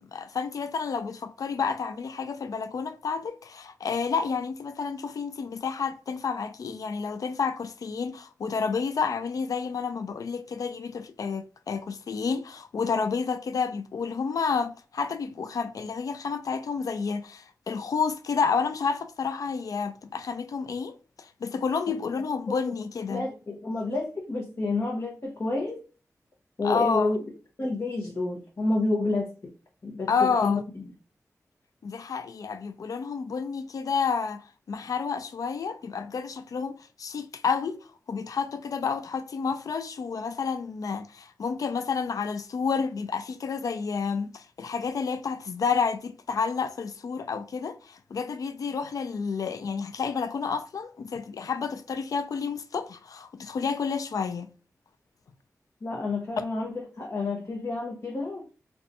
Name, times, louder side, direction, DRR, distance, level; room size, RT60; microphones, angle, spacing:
voice 1, 0.0-23.3 26.6-27.1 30.1-30.6 31.8-37.8 38.1-54.5 56.4-56.5, left 5 dB, 75° left, 0.3 m, -30 dB
voice 2, 23.1-25.8 26.6-27.2 27.6-29.5 29.8-30.8 55.8-58.5, left 2 dB, 50° left, 0.7 m, -29 dB
2.6 x 2.3 x 4.0 m
cardioid pair, 60°, 6 cm